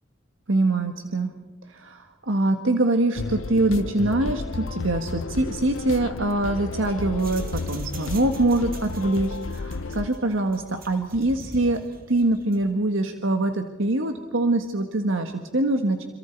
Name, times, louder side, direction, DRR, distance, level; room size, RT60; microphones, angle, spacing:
voice 1, 0.5-1.3 1.7-11.8 12.1-16.0, right 2 dB, 80° right, 6 dB, 1.5 m, -24 dB
sound 1, 3.2-10.1, left 3 dB, 85° left, 0.6 m, -32 dB
sound 2, 6.6-12.7, right 3 dB, 50° right, 2.1 m, -45 dB
27.5 x 26.5 x 4.6 m, 1.2 s
head